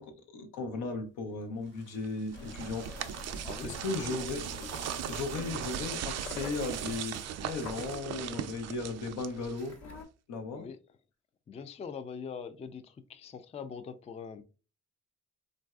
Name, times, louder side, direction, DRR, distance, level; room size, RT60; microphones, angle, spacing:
voice 1, 0.0-3.1 3.6-4.7 5.1-9.8 10.3-10.7, left 3 dB, 80° left, 0.8 m, -36 dB
sound 1, 1.3-8.1 9.4-9.5, left 3 dB, 40° left, 1.1 m, -56 dB
sound 2, 2.0-9.8, right 10 dB, 60° right, 0.4 m, -39 dB
sound 3, 2.3-10.0, left 3 dB, 65° left, 1.2 m, -47 dB
voice 2, 3.4-3.8 10.6-10.8 11.5-14.4, left 6 dB, 20° left, 0.3 m, -42 dB
3.1 x 2.6 x 2.3 m
cardioid pair, 90°, 30 cm